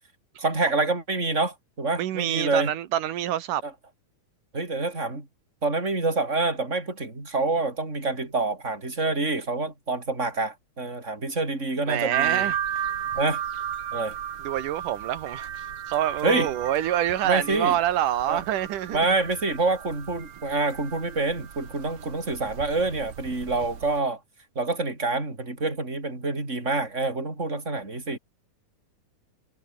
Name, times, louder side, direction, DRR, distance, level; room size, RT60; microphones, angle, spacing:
voice 1, 0.4-2.7 3.6-3.7 4.5-5.3 5.6-12.5 13.1-13.4 13.9-14.1 16.2-16.5 17.2-17.8 18.3-18.4 18.9-24.2 24.6-28.2, right 3 dB, 20° right, 6.2 m, -27 dB
voice 2, 2.0-3.6 11.9-12.6 14.4-15.5 15.9-19.1, right 12 dB, 80° right, 3.0 m, -26 dB
sound 1, 12.1-24.0, right 9 dB, 55° right, 2.1 m, -34 dB
omnidirectional pair, 3.7 m